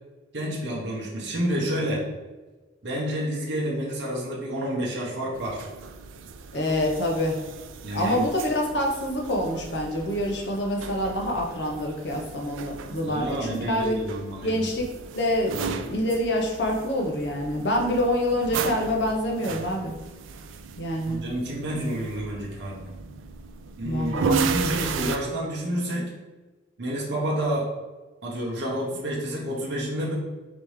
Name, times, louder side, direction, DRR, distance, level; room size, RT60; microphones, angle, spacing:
voice 1, 0.3-2.0 2.8-5.7 7.8-8.3 13.0-14.5 21.1-22.9 23.8-26.1 26.8-27.7 28.2-30.1, equal, 65° right, -4 dB, 0.9 m, -29 dB
sound 1, 5.3-25.2, right 5 dB, 85° right, 0.3 m, -35 dB
voice 2, 6.5-7.4 7.9-14.0 14.4-14.9 15.1-19.9 20.8-21.2 23.8-24.3, left 1 dB, 65° left, 0 dB, 0.9 m, -26 dB
4.1 x 3.3 x 3.2 m, 1.2 s
head